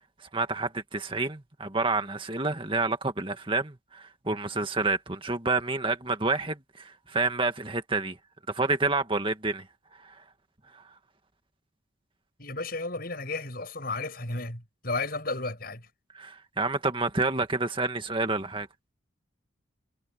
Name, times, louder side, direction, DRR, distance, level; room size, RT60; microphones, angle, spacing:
voice 1, 0.3-8.2 8.5-9.7 10.0-10.2 16.1-18.7, right 3 dB, 25° right, 1.9 m, -29 dB
voice 2, 12.4-15.8, left 3 dB, 45° left, 7.2 m, -33 dB
head